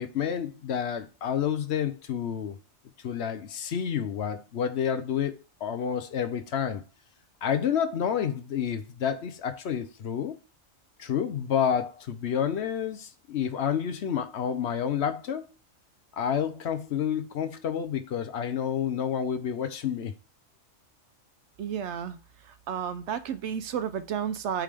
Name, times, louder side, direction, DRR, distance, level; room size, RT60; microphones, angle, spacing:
voice 1, 0.0-2.6 3.0-6.8 7.4-10.4 11.0-15.5 16.1-20.1, left 8 dB, 65° left, 0.8 m, -29 dB
voice 2, 21.6-22.2 22.7-24.6, right 8 dB, 70° right, 0.8 m, -31 dB
8.4 x 3.7 x 3.3 m
omnidirectional pair, 1.3 m